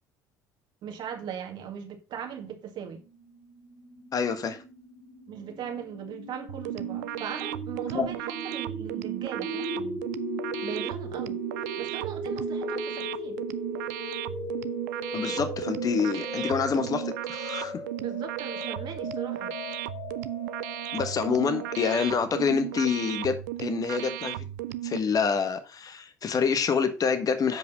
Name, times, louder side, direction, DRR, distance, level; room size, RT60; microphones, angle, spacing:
voice 1, 0.8-3.0 5.3-10.0 10.6-11.4 11.8-13.4 18.0-19.5, right 8 dB, 55° right, 1.9 m, -38 dB
sound 1, 3.0-22.0, left 1 dB, 85° left, 3.0 m, -38 dB
voice 2, 4.1-4.6 7.9-8.1 15.1-17.8 20.9-24.4 24.8-27.6, left 6 dB, 40° left, 1.4 m, -27 dB
sound 2, 6.5-25.0, right 15 dB, 80° right, 0.5 m, -35 dB
7.9 x 5.2 x 5.4 m
hypercardioid pair, 65°, 9 cm